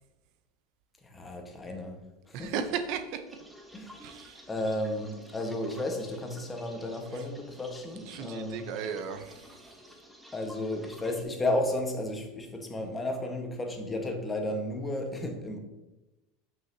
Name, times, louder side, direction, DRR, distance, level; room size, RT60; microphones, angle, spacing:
voice 1, 1.0-2.0 2.3-2.7 3.7-4.2 4.5-8.6 10.3-15.6, left 1 dB, 15° left, 3 dB, 1.3 m, -33 dB
voice 2, 2.3-3.2 4.0-4.4 7.1-7.2 8.1-9.6, right 7 dB, 60° right, 8 dB, 0.7 m, -35 dB
sound 1, 3.2-11.2, equal, 5° right, 1.1 m, -52 dB
8.9 x 5.7 x 2.8 m, 1.0 s
supercardioid pair, 115°, 0 cm